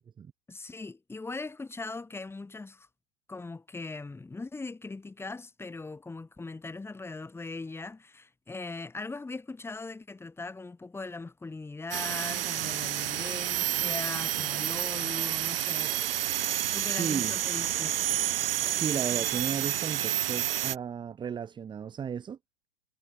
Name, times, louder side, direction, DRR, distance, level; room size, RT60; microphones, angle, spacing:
voice 1, 0.5-2.9 3.3-16.0 16.7-18.1, left 3 dB, 5° left, 4.6 m, -40 dB
sound 1, 11.9-20.8, right 12 dB, 55° right, 0.6 m, -30 dB
voice 2, 16.8-17.4 18.8-22.4, right 7 dB, 15° right, 1.5 m, -34 dB
figure-of-eight pair, 110°, 34 cm